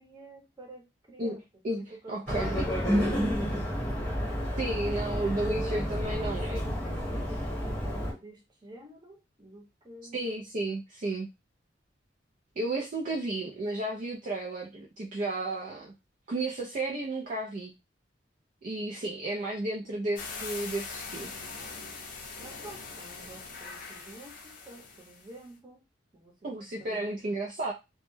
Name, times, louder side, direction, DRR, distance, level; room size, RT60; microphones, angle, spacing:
voice 1, 0.0-1.4 1.7-3.4 4.5-7.4 7.6-10.2 13.0-13.2 22.4-25.8 26.1-27.1, right 2 dB, 25° right, 0 dB, 0.8 m, -46 dB
voice 2, 1.2-2.7 4.6-6.6 10.1-11.3 12.6-15.9 16.3-17.7 18.6-21.3 26.4-27.7, right 2 dB, 45° right, -2 dB, 0.4 m, -33 dB
sound 1, 2.3-8.1, equal, 10° left, 1.0 m, -30 dB
sound 2, 20.2-25.4, left 4 dB, 50° left, 0.5 m, -42 dB
2.1 x 2.0 x 3.1 m, 0.24 s
head